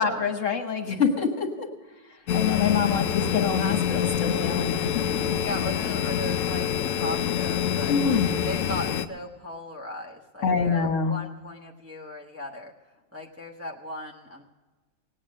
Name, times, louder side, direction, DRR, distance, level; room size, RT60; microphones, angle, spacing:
voice 1, 0.0-1.7 2.3-5.4 7.9-8.4 10.4-11.1, left 5 dB, 45° left, 4 dB, 1.4 m, -26 dB
sound 1, 2.3-9.1, left 9 dB, 70° left, 0.7 m, -26 dB
voice 2, 5.4-6.7 6.9-7.9 8.4-12.7 13.1-14.4, left 1 dB, 15° right, -2 dB, 0.5 m, -37 dB
18.5 x 8.9 x 6.4 m, 1.3 s
omnidirectional pair, 2.0 m